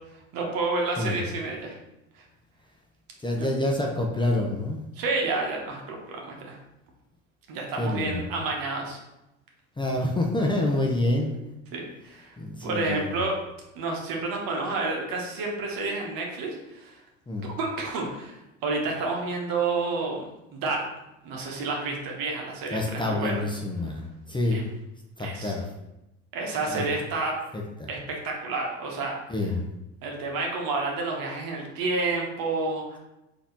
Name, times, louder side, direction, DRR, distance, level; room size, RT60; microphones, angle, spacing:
voice 1, 0.3-1.8 2.1-2.2 3.3-3.5 5.0-6.6 7.5-9.0 11.7-12.3 12.6-13.4 13.8-17.0 17.4-20.2 20.5-20.8 21.2-23.4 24.5-24.6 25.2-25.5 26.3-27.3 27.9-29.1 30.0-33.0, right 3 dB, 60° right, 0 dB, 1.2 m, -30 dB
voice 2, 3.2-4.8 7.8-8.3 9.8-11.3 12.4-13.2 17.3-17.5 22.7-24.6 25.2-25.7 26.7-26.9 27.5-27.9 29.3-29.7, left 1 dB, 10° left, 0 dB, 0.7 m, -27 dB
4.0 x 2.9 x 3.9 m, 0.93 s
hypercardioid pair, 70°, 40 cm